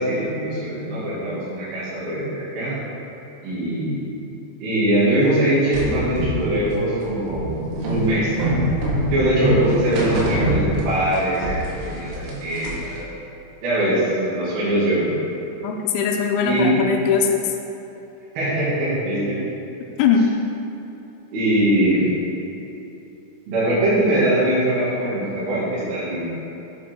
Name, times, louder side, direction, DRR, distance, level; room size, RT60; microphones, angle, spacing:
voice 1, 0.0-2.8 3.4-4.2 4.6-7.5 7.9-8.3 9.1-13.1 13.6-15.1 16.4-16.8 18.4-19.4 21.3-22.1 23.5-26.3, right 1 dB, 60° right, -10 dB, 3.5 m, -22 dB
sound 1, 5.7-11.2 11.4-13.0, right 1 dB, 80° right, 4.1 m, -24 dB
voice 2, 15.6-17.5 20.0-20.3, left 6 dB, 85° left, 1 dB, 2.9 m, -20 dB
8.3 x 7.9 x 4.5 m, 3.0 s
omnidirectional pair, 5.5 m